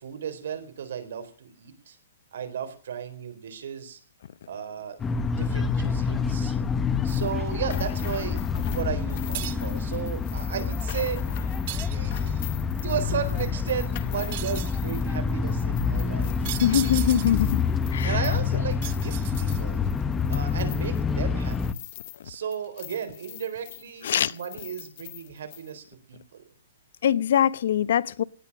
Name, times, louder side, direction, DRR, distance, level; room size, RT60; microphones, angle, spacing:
voice 1, 0.0-2.0 2.3-4.0 4.5-6.5 7.0-11.6 11.9-12.5 12.8-16.5 18.0-19.9 20.3-21.9 22.2-26.4, right 8 dB, 65° right, 4.0 m, -34 dB
sound 1, 5.0-21.7, left 5 dB, 10° left, 0.7 m, -27 dB
sound 2, 7.1-22.3 22.5-25.7, left 18 dB, 35° left, 1.1 m, -45 dB
sound 3, 9.3-9.8 11.7-12.4 14.3-14.8 16.4-17.5 18.8-19.9, right 16 dB, 35° right, 0.8 m, -36 dB
voice 2, 16.6-17.6 17.9-18.2 24.0-24.3 27.0-28.2, left 10 dB, 60° left, 0.8 m, -23 dB
18.5 x 10.0 x 6.0 m
hypercardioid pair, 165°, 0 cm